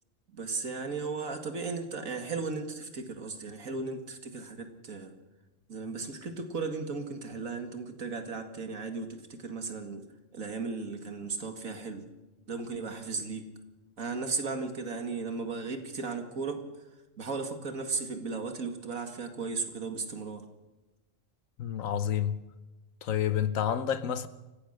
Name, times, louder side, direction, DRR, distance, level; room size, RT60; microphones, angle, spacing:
voice 1, 0.3-5.1 5.7-10.0 10.3-12.1 12.5-13.5 14.0-16.7 17.2-20.4, right 4 dB, 85° right, 2.5 m, -36 dB
voice 2, 21.6-22.4 23.0-24.3, left 9 dB, 80° left, 1.4 m, -29 dB
28.0 x 15.5 x 6.6 m
omnidirectional pair, 1.4 m